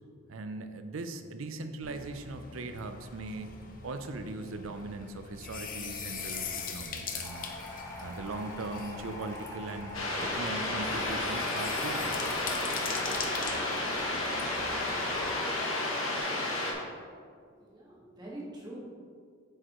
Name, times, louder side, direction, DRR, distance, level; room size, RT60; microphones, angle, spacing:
voice 1, 0.3-3.5 3.8-9.9 10.2-12.2, right 3 dB, 75° right, 8 dB, 0.6 m, -40 dB
sound 1, 1.8-15.3, left 5 dB, 40° left, 0.7 m, -42 dB
sound 2, 7.2-16.2, left 1 dB, 15° left, 1.2 m, -44 dB
sound 3, 9.9-16.7, left 2 dB, 75° left, 1.5 m, -32 dB
voice 2, 17.5-18.8, right 1 dB, 20° right, -5 dB, 1.7 m, -44 dB
9.0 x 6.5 x 3.0 m, 2.1 s
head